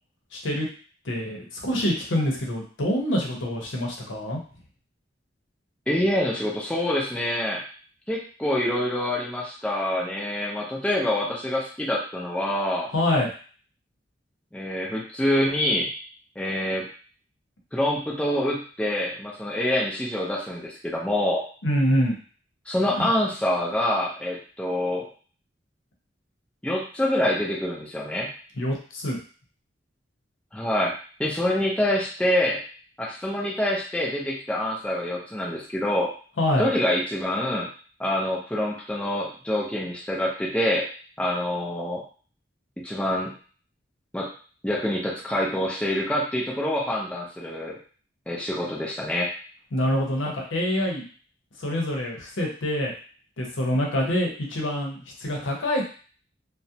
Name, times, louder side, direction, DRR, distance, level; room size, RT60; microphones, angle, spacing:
voice 1, 0.3-0.7 1.0-4.4 12.9-13.3 21.6-22.2 23.0-23.1 28.6-29.2 36.4-36.7 49.7-51.0 51.6-52.9 53.4-55.8, left 1 dB, 90° left, -1 dB, 0.7 m, -25 dB
voice 2, 5.9-7.6 8.1-12.9 14.5-15.9 16.4-16.9 17.7-21.4 22.7-25.0 26.6-28.3 30.5-30.9 31.2-32.6 33.0-36.1 36.6-37.7 38.0-40.8 41.2-42.0 42.8-43.3 44.1-44.3 44.6-47.8 48.3-49.3, left 1 dB, 5° left, -4 dB, 0.5 m, -26 dB
2.4 x 2.0 x 2.7 m, 0.41 s
head